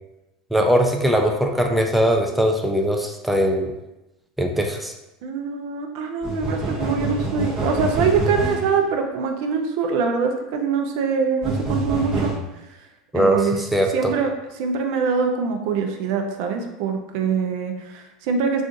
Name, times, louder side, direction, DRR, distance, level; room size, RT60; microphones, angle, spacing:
voice 1, 0.5-3.7 4.4-4.9 13.1-14.1, equal, ahead, 2 dB, 0.4 m, -20 dB
voice 2, 5.2-12.3 13.1-13.6 13.9-18.6, right 5 dB, 70° right, 4 dB, 0.4 m, -24 dB
sound 1, 6.2-8.8 11.4-12.3, right 1 dB, 30° right, 0.8 m, -26 dB
2.5 x 2.4 x 3.7 m, 0.95 s
hypercardioid pair, 100°, 3 cm